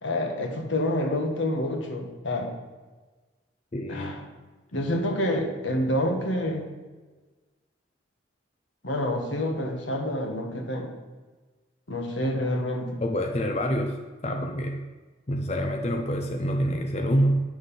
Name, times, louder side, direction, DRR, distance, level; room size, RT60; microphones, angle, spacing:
voice 1, 0.0-2.5 3.9-4.2 4.7-6.7 8.8-10.9 11.9-13.0, left 1 dB, 80° left, 3 dB, 1.6 m, -28 dB
voice 2, 3.7-4.1 13.0-14.0 14.2-14.8 15.3-17.4, equal, 35° left, 3 dB, 0.6 m, -26 dB
9.6 x 6.5 x 5.5 m, 1.3 s
head